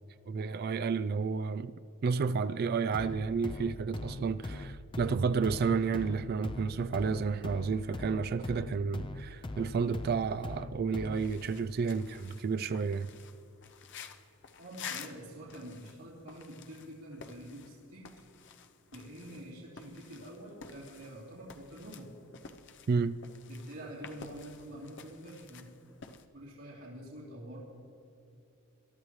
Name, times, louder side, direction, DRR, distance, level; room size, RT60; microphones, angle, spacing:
voice 1, 0.3-1.7 2.0-13.1 22.9-23.2, right 5 dB, 50° right, 0.4 m, -31 dB
sound 1, 2.9-11.4, left 2 dB, 25° left, 0.5 m, -42 dB
sound 2, 11.1-26.2, left 6 dB, 60° left, 0.8 m, -51 dB
voice 2, 14.6-18.0 18.9-22.1 23.5-25.7 26.3-27.6, right 1 dB, 90° right, 3.1 m, -46 dB
22.0 x 12.5 x 3.2 m
head